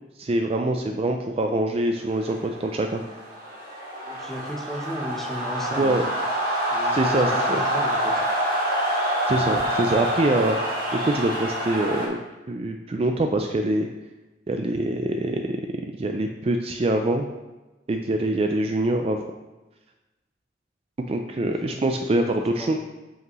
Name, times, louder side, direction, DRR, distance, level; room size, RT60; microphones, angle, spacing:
voice 1, 0.2-3.0 5.8-6.0 6.8-7.6 9.3-10.6 11.0-12.2 12.5-13.9 14.5-17.3 17.9-19.2 21.1-22.8, right 2 dB, 35° right, 4 dB, 0.4 m, -24 dB
sound 1, 2.2-12.1, equal, 55° right, 1.8 m, -26 dB
voice 2, 4.1-6.0 6.7-8.3 21.7-22.8, equal, ahead, -1 dB, 0.8 m, -35 dB
7.4 x 5.4 x 3.1 m, 1.1 s
head